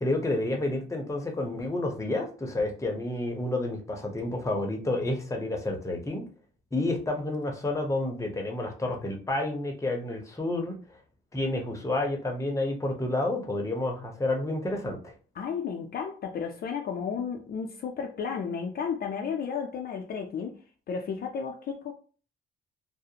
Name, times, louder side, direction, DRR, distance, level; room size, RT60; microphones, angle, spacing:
voice 1, 0.0-6.2 6.7-10.8 11.3-15.1, left 2 dB, 15° left, 2 dB, 0.7 m, -30 dB
voice 2, 15.3-20.6 20.9-21.9, left 6 dB, 50° left, 2 dB, 0.4 m, -33 dB
2.4 x 2.0 x 2.8 m, 0.39 s
cardioid pair, 90°, 20 cm